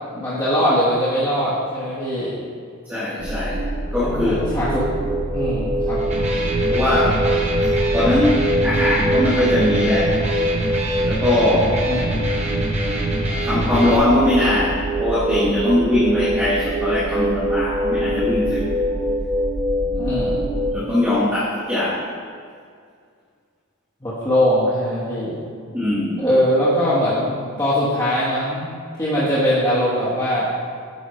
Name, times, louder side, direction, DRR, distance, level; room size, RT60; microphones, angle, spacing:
voice 1, 0.1-2.3 3.9-4.9 5.3-6.0 11.9-12.0 19.9-20.4 24.0-25.4 26.2-28.7 29.0-30.5, equal, 20° left, -11 dB, 1.2 m, -21 dB
voice 2, 2.8-3.6 3.9-4.5 6.7-7.2 7.9-10.2 11.0-11.8 13.4-18.8 20.7-22.1 25.7-26.2, left 1 dB, 10° right, -11 dB, 1.4 m, -20 dB
sound 1, 3.2-20.7, right 1 dB, 55° right, 1.8 m, -23 dB
Electric guitar, 6.0-14.0, right 1 dB, 30° right, 0.9 m, -25 dB
9.4 x 5.6 x 3.1 m, 2.2 s
head